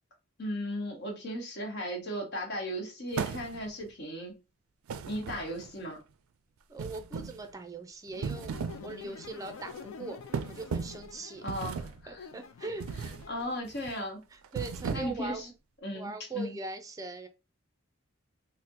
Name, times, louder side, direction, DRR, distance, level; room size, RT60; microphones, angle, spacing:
voice 1, 0.4-4.4 5.0-6.0 11.4-12.1 13.3-14.2 14.9-15.5 15.8-16.6, equal, 55° left, 1.1 m, -36 dB
sound 1, 3.1-3.8 4.9-5.8 6.8-7.5 8.1-8.9 9.2-9.5 10.3-11.1 11.5-12.0 12.8-13.3 13.6-13.9 14.4-15.3, right 6 dB, 85° right, 0.3 m, -36 dB
voice 2, 6.7-8.6 8.8-11.5 12.1-12.8 14.3-15.4 15.9-17.3, right 3 dB, 15° right, 0.5 m, -41 dB
sound 2, 8.1-13.6, left 5 dB, 80° left, 0.4 m, -48 dB
4.0 x 2.1 x 2.5 m
head